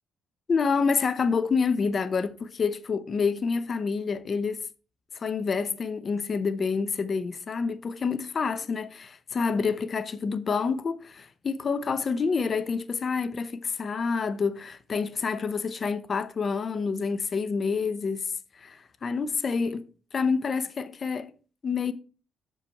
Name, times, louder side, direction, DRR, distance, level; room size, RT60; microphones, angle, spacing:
voice 1, 0.5-4.7 5.1-18.3 18.6-19.9 20.1-21.3 21.6-21.9, left 5 dB, 45° left, 0.7 m, -28 dB
6.8 x 5.4 x 4.6 m
cardioid pair, 90°, 0 cm